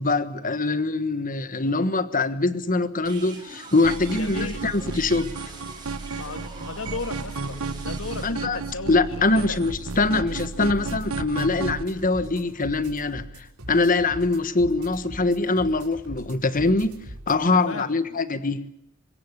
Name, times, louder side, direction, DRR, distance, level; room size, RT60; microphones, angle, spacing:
voice 1, 0.0-5.4 8.2-8.6 8.9-17.0 17.3-18.6, left 3 dB, 40° left, 1.4 m, -23 dB
sound 1, 3.0-8.3, right 3 dB, 20° right, 7.9 m, -43 dB
sound 2, 3.8-11.8, right 4 dB, 65° right, 1.1 m, -33 dB
voice 2, 4.2-4.9 6.1-9.0 9.3-9.6 17.5-18.2, left 3 dB, 65° left, 1.9 m, -36 dB
sound 3, 9.7-17.4, equal, 90° right, 6.7 m, -41 dB
24.5 x 21.0 x 8.3 m
head